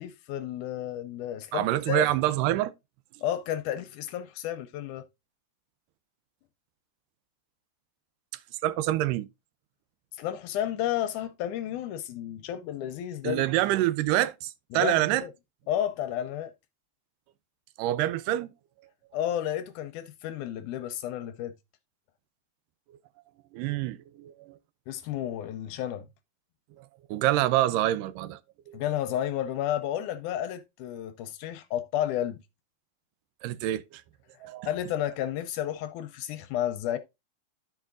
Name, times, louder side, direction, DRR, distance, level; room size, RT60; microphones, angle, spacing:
voice 1, 0.0-2.1 3.2-5.0 10.2-13.4 14.7-15.3 15.7-16.5 19.1-21.5 24.9-26.1 28.7-32.4 34.7-37.0, left 11 dB, 80° left, 2.0 m, -32 dB
voice 2, 1.5-2.7 8.6-9.3 13.2-15.2 17.8-18.5 23.5-24.6 26.8-28.4 28.7-28.8 33.4-34.0 34.4-34.7, right 14 dB, 85° right, 2.2 m, -26 dB
13.0 x 4.8 x 2.4 m
omnidirectional pair, 3.8 m